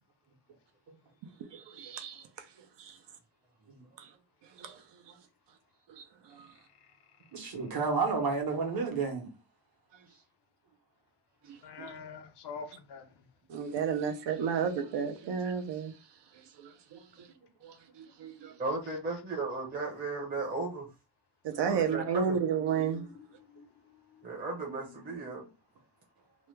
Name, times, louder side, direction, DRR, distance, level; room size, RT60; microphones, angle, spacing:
voice 1, 1.5-2.2 2.8-2.9 4.6-4.7 6.0-6.1 6.4-6.5 11.8-11.9 13.5-15.9 16.9-17.0 17.6-17.7 18.2-18.5 21.4-23.0, right 7 dB, 75° right, 0.7 m, -31 dB
voice 2, 7.3-9.3, right 4 dB, 55° right, 1.0 m, -31 dB
voice 3, 11.6-13.0 22.7-23.7, left 5 dB, 70° left, 0.7 m, -45 dB
voice 4, 18.6-20.9 21.6-22.4 24.2-25.4, right 3 dB, 20° right, 0.7 m, -35 dB
3.0 x 2.2 x 3.2 m
wide cardioid pair, 150°, 42 cm